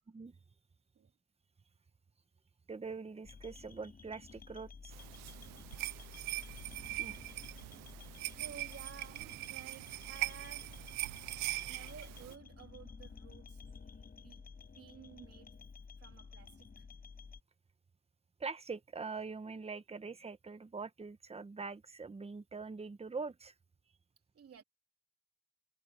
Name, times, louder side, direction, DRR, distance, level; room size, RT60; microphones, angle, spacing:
voice 1, 2.7-5.0 7.0-7.2 18.4-23.5, right 4 dB, 20° right, 1.2 m, -43 dB
sound 1, 3.2-17.4, left 5 dB, 30° left, 5.2 m, -53 dB
sound 2, 4.9-12.3, right 18 dB, 90° right, 0.6 m, -41 dB
voice 2, 5.3-5.8 8.3-10.9 11.7-13.6 14.2-15.6 16.0-16.9 24.3-24.6, right 7 dB, 45° right, 3.0 m, -54 dB
cardioid pair, 105°, 32 cm